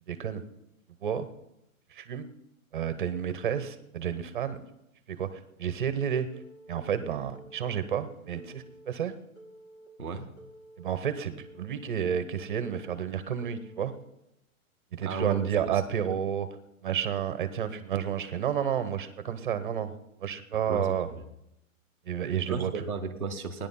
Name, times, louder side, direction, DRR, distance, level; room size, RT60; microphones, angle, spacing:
voice 1, 0.1-0.4 1.0-1.3 1.9-2.3 2.7-4.6 5.1-6.3 6.7-9.1 10.8-13.9 14.9-16.5 16.8-19.9 20.2-21.1 22.1-22.7, right 8 dB, 35° right, 11 dB, 0.9 m, -31 dB
Telephone, 6.3-6.8 7.3-7.9 8.3-8.9 9.4-9.9 10.4-10.9 11.4-11.9 12.4-12.9 13.4-13.9, right 1 dB, 65° left, 4.5 m, -51 dB
voice 2, 10.0-10.3 15.0-15.8 20.7-21.2 22.5-23.7, right 4 dB, 5° left, -7 dB, 0.7 m, -34 dB
17.0 x 10.5 x 5.6 m, 0.85 s
hypercardioid pair, 180°, 42 cm